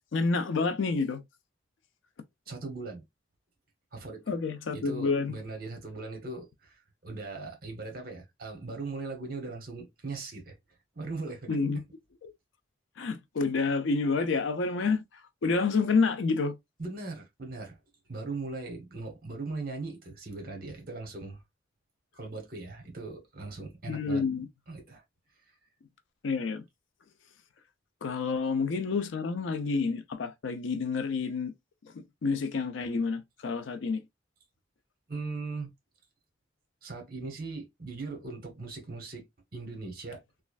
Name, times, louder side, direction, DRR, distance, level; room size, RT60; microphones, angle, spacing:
voice 1, 0.1-1.2 4.3-5.3 11.5-11.8 13.0-15.0 15.4-16.6 23.9-24.5 26.2-26.6 28.0-31.5 31.9-34.0, left 4 dB, 70° left, 0.4 m, -28 dB
voice 2, 2.5-3.0 3.9-4.2 4.7-10.5 11.0-11.6 16.8-17.8 18.1-21.4 22.1-24.2 24.7-25.0 35.1-35.7 36.8-39.3 39.5-40.2, right 3 dB, 45° right, 1.0 m, -39 dB
3.1 x 2.4 x 2.3 m
head